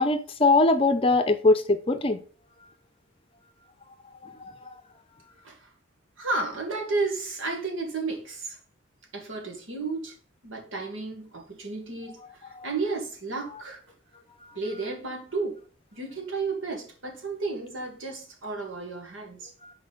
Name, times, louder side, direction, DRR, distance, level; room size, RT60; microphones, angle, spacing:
voice 1, 0.0-2.2 4.2-4.3 19.6-19.7, left 2 dB, 25° left, 0.6 m, -21 dB
voice 2, 6.2-8.6 9.1-10.1 10.4-13.8 14.5-15.6 15.9-19.5, right 3 dB, 75° right, 2.0 m, -32 dB
6.5 x 4.5 x 5.1 m
head